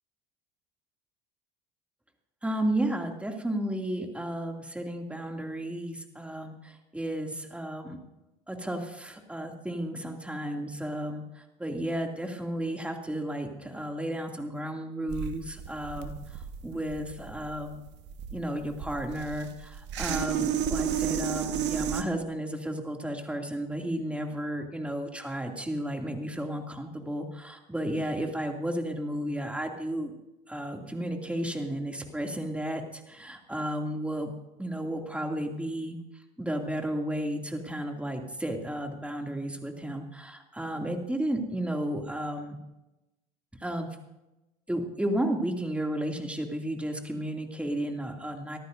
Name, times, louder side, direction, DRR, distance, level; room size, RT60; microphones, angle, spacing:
voice 1, 2.4-8.0 8.5-17.8 18.3-30.1 30.5-34.3 34.6-36.0 36.4-42.6 43.6-43.9 44.7-48.6, right 1 dB, 5° right, 3 dB, 2.6 m, -33 dB
sound 1, 15.1-22.0, right 9 dB, 60° right, 1.5 m, -32 dB
24.0 x 14.0 x 2.7 m, 0.97 s
hypercardioid pair, 75°, 21 cm